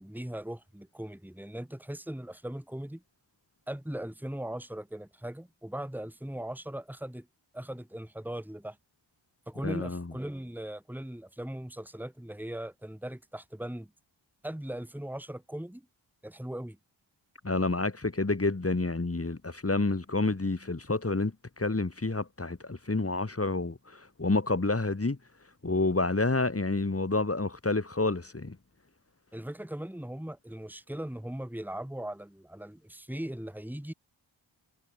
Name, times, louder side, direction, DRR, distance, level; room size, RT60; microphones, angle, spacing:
voice 1, 0.0-3.0 3.7-7.3 7.5-8.8 9.5-13.9 14.4-15.9 16.2-16.8 29.3-33.9, right 1 dB, 5° right, 2.5 m, -39 dB
voice 2, 9.6-10.1 17.4-25.2 25.6-28.6, left 3 dB, 30° left, 3.1 m, -29 dB
wide cardioid pair, 70°, 47 cm